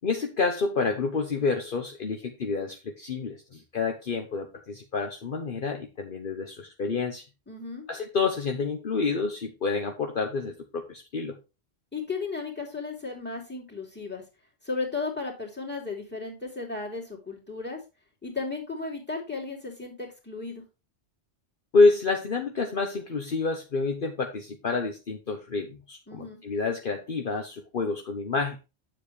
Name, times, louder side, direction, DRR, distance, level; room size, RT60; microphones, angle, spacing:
voice 1, 0.0-7.2 7.9-11.4 21.7-28.6, left 4 dB, 55° left, 4 dB, 1.1 m, -28 dB
voice 2, 7.5-7.9 11.9-14.2 14.6-17.8 18.2-20.6 26.1-26.4, left 4 dB, 10° left, -2 dB, 2.8 m, -35 dB
9.2 x 7.3 x 3.1 m, 0.27 s
omnidirectional pair, 1.1 m